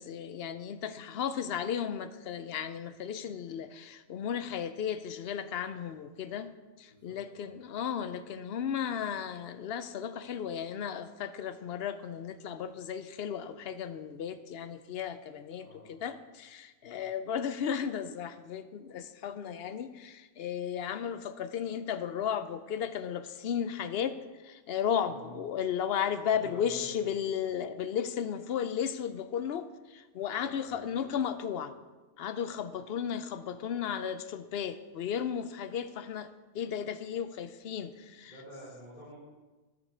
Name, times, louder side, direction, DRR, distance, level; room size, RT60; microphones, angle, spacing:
voice 1, 0.0-24.2 24.4-31.7 32.2-36.3 36.5-38.3, left 8 dB, 60° left, 0.7 m, -34 dB
voice 2, 6.9-7.5 15.6-15.9 16.8-17.0 25.0-25.4 26.3-27.2 30.4-31.2 38.2-39.2, equal, 40° left, 3.0 m, -50 dB
12.0 x 6.6 x 5.0 m
omnidirectional pair, 1.3 m